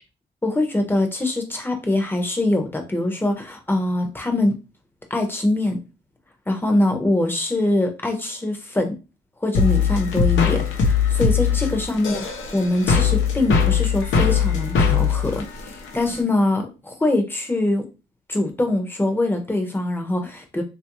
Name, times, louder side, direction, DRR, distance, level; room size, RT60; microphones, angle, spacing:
voice 1, 0.4-4.6 5.1-5.8 6.5-9.0 9.4-17.9 18.3-20.6, left 2 dB, 10° left, 4 dB, 0.8 m, -23 dB
sound 1, 9.5-16.2, left 6 dB, 80° left, 0.8 m, -20 dB
3.0 x 2.6 x 3.0 m, 0.29 s
cardioid pair, 90°, 20 cm